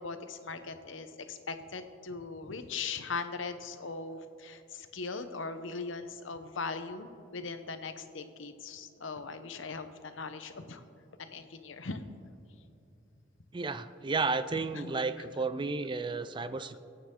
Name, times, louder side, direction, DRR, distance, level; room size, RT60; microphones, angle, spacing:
voice 1, 0.0-10.8 11.2-12.1 14.7-15.0, left 4 dB, 85° left, 9 dB, 0.9 m, -40 dB
voice 2, 13.5-16.8, right 4 dB, 25° right, 12 dB, 0.4 m, -32 dB
24.5 x 9.0 x 3.8 m, 2.6 s
head